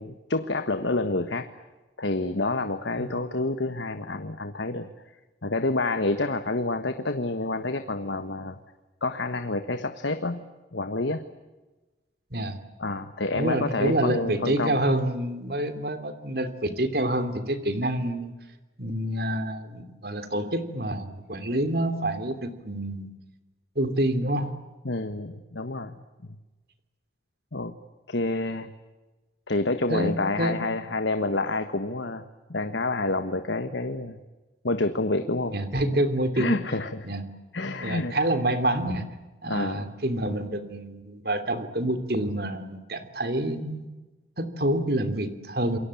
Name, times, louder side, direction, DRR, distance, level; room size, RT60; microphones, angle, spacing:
voice 1, 0.0-1.5 2.0-4.9 5.4-8.6 9.0-10.4 10.7-11.2 12.8-14.8 24.8-26.0 26.2-26.4 27.5-27.7 28.1-28.7 29.5-32.2 32.5-34.2 34.6-35.5 36.4-37.1 37.5-38.1 39.4-39.9, left 2 dB, 85° left, 9 dB, 1.5 m, -28 dB
voice 2, 13.3-18.3 18.8-23.1 23.7-24.5 29.9-30.6 35.5-36.6 37.0-37.2 37.8-39.1 39.4-43.9 44.4-45.8, right 1 dB, 55° right, 10 dB, 2.9 m, -27 dB
28.5 x 23.0 x 8.5 m, 1.1 s
head